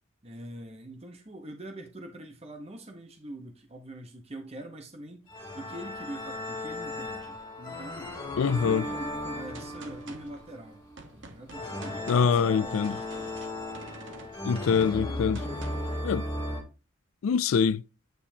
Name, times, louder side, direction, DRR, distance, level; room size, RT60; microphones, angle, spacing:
voice 1, 0.2-5.2 5.5-8.1 8.4-10.8 11.1-13.0, right 1 dB, 30° right, 0.9 m, -44 dB
sound 1, 5.3-16.6, left 1 dB, 20° left, 3.0 m, -36 dB
voice 2, 8.4-8.9 12.1-13.0 14.4-15.4 16.0-16.2 17.2-17.8, left 6 dB, 85° left, 0.4 m, -24 dB
Gunshot gunfire, 9.5-16.0, right 2 dB, 70° right, 1.2 m, -48 dB
9.1 x 5.2 x 2.8 m
head